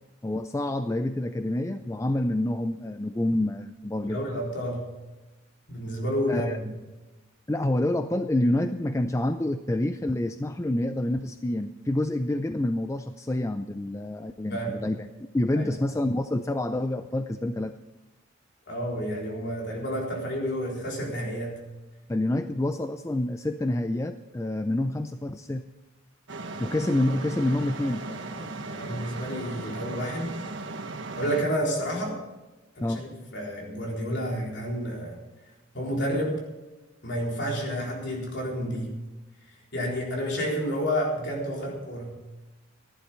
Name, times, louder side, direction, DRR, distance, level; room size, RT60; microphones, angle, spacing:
voice 1, 0.2-4.2 6.3-6.6 7.5-15.1 15.3-17.8 22.1-25.6 26.6-28.6 32.8-33.0, left 1 dB, 15° left, 9 dB, 0.4 m, -27 dB
voice 2, 4.0-4.9 5.7-6.7 14.5-14.8 15.5-15.7 18.7-21.6 28.7-30.4 31.2-32.2 32.8-35.2 35.7-36.4 37.0-39.0 39.7-42.2, equal, 55° left, -1 dB, 4.0 m, -30 dB
sound 1, 26.3-31.4, right 3 dB, 60° right, 1.4 m, -37 dB
15.0 x 11.0 x 5.5 m, 1.1 s
head